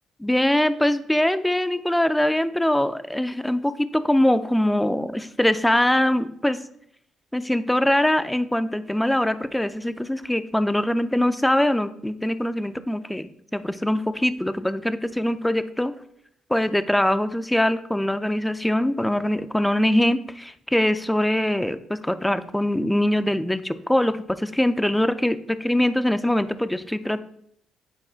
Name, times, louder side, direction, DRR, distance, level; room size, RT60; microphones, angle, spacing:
voice 1, 0.2-6.6 7.3-15.9 16.5-27.2, left 1 dB, 5° left, 12 dB, 0.4 m, -23 dB
9.6 x 4.2 x 2.4 m, 0.70 s
cardioid pair, 90°, 0 cm